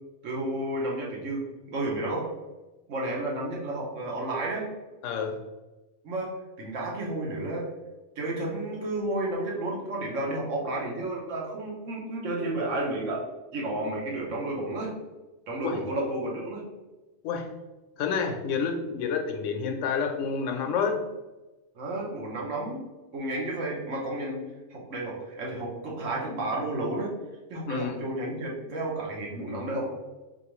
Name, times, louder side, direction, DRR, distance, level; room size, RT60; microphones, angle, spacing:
voice 1, 0.2-2.3 2.9-4.7 6.0-7.7 8.2-13.3 13.5-15.0 15.5-16.6 21.7-22.8 23.1-24.4 24.7-27.1 27.5-29.9, right 1 dB, 85° right, -2 dB, 1.3 m, -31 dB
voice 2, 5.0-5.4 15.6-15.8 17.2-17.5 18.0-21.0 27.7-28.0, left 6 dB, 85° left, 5 dB, 0.9 m, -29 dB
3.8 x 3.0 x 3.0 m, 1.1 s
omnidirectional pair, 1.2 m